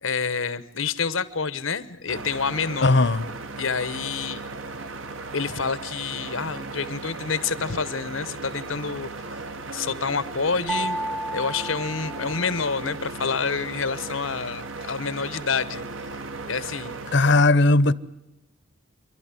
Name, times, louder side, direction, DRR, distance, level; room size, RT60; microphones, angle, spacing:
voice 1, 0.0-2.9 3.6-4.4 5.3-9.1 9.7-11.0 11.3-15.8 16.5-17.0, left 5 dB, 90° left, 1.1 m, -28 dB
sound 1, 2.1-17.4, right 3 dB, 80° right, 1.4 m, -36 dB
voice 2, 2.8-3.3 17.1-17.9, left 2 dB, 60° left, 0.8 m, -17 dB
sound 2, 10.7-12.8, right 2 dB, ahead, 0.7 m, -32 dB
28.5 x 12.0 x 9.7 m
head